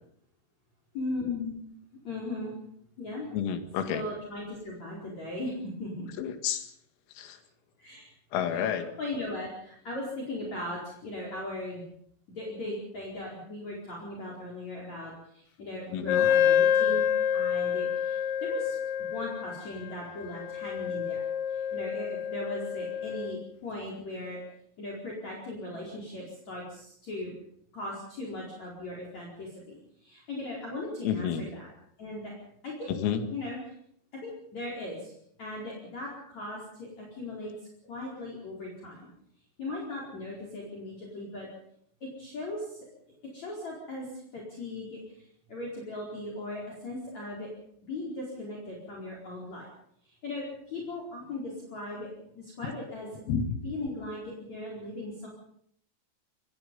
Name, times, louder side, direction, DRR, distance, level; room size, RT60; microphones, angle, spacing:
voice 1, 0.9-1.6 2.0-2.5 3.0-3.3 3.9-6.1 7.8-8.1 8.5-11.8 12.3-18.8 19.1-24.4 24.8-27.3 27.7-31.7 32.0-32.3 32.6-32.9 33.3-33.7 34.2-37.5 37.8-39.1 39.6-41.5 42.0-42.8 43.3-47.5 47.8-49.7 50.1-52.1 52.4-53.1 53.6-55.3, left 2 dB, 35° left, -2 dB, 5.4 m, -38 dB
voice 2, 3.3-4.0 6.2-6.7 7.2-7.4 8.3-8.9 15.9-16.3 31.0-31.4 32.9-33.2 53.3-53.6, left 8 dB, 85° left, 7 dB, 4.7 m, -30 dB
Wind instrument woodwind instrument, 16.1-23.4, left 9 dB, 70° left, 2.6 m, -28 dB
26.0 x 21.0 x 5.5 m, 0.69 s
omnidirectional pair, 5.9 m